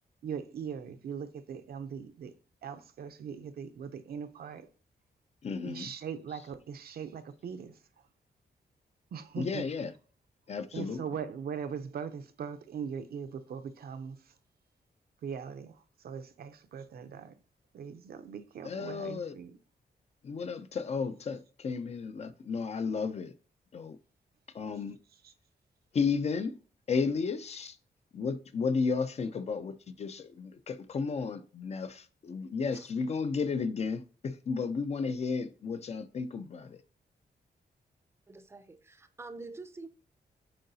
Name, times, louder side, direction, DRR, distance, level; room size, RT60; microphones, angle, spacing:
voice 1, 0.2-2.3 2.6-4.7 5.6-7.8 9.1-9.7 10.7-14.3 15.2-17.4 17.7-19.6 25.2-25.3, right 7 dB, 65° right, 0.6 m, -40 dB
voice 2, 5.4-5.9 9.4-9.9 10.5-11.0 18.6-19.3 20.2-23.3 23.7-24.0 24.5-25.0 25.9-26.6 26.9-27.8 28.1-36.8, left 5 dB, 40° left, 0.4 m, -33 dB
voice 3, 38.3-39.9, right 3 dB, 15° right, 0.5 m, -46 dB
7.6 x 4.7 x 2.7 m
wide cardioid pair, 160°, 17 cm